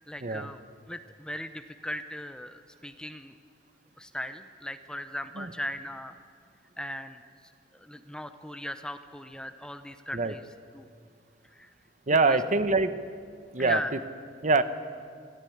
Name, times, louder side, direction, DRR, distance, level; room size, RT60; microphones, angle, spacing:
voice 1, 0.1-0.6 0.9-3.3 4.0-6.1 6.8-7.2 7.7-10.4 10.7-10.9 11.5-11.7 12.2-12.4 13.6-13.9, left 1 dB, 5° left, 9 dB, 0.7 m, -38 dB
voice 2, 12.1-12.9 13.5-13.8 14.4-14.6, right 3 dB, 45° right, 11 dB, 0.9 m, -24 dB
23.5 x 15.0 x 8.6 m, 2.2 s
head